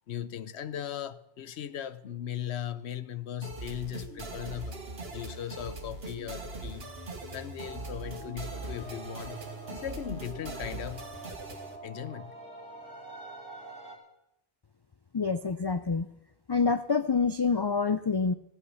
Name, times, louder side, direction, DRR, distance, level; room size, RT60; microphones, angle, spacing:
voice 1, 0.1-4.8 5.1-6.9 7.3-9.4 9.7-11.0 11.8-12.4, left 10 dB, 80° left, 1.0 m, -38 dB
sound 1, 3.4-11.8, right 3 dB, 70° right, 1.9 m, -41 dB
sound 2, 7.6-14.0, right 2 dB, 5° left, 4.0 m, -46 dB
voice 2, 15.1-16.1 16.5-18.3, left 5 dB, 40° left, 0.3 m, -27 dB
15.5 x 9.6 x 6.9 m
omnidirectional pair, 1.1 m